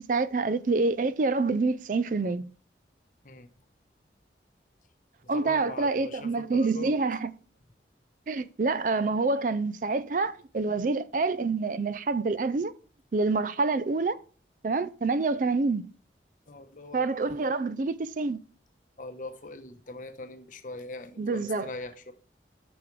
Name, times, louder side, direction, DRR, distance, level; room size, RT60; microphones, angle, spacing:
voice 1, 0.1-2.5 5.3-7.3 8.3-12.7 13.1-14.2 14.6-15.9 16.9-18.4 21.2-21.7, right 3 dB, 45° right, 0.4 m, -27 dB
voice 2, 5.3-7.0 16.5-17.1 17.4-17.6 19.0-22.1, left 2 dB, 45° left, 0.9 m, -41 dB
8.7 x 6.1 x 3.2 m
head